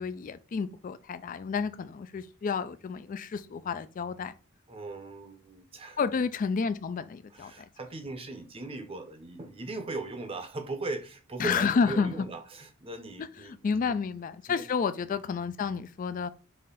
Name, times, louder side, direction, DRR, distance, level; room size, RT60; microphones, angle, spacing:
voice 1, 0.0-4.3 6.0-7.5 11.4-12.3 13.2-16.3, left 5 dB, 40° left, 0.3 m, -30 dB
voice 2, 4.7-6.0 7.3-13.7 14.5-14.6, right 2 dB, 25° right, 0.7 m, -39 dB
4.2 x 3.1 x 3.8 m
head